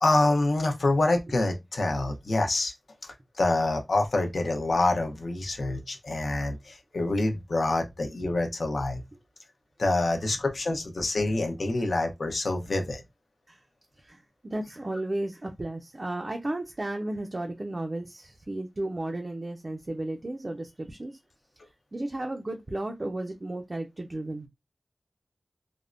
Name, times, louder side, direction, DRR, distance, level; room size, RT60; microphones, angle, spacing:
voice 1, 0.0-2.7 3.4-9.0 9.8-13.0, left 2 dB, 70° left, 0.7 m, -26 dB
voice 2, 14.0-21.2 21.9-24.5, right 1 dB, 35° right, 0.5 m, -34 dB
3.4 x 2.1 x 2.5 m
wide cardioid pair, 85°, 0 cm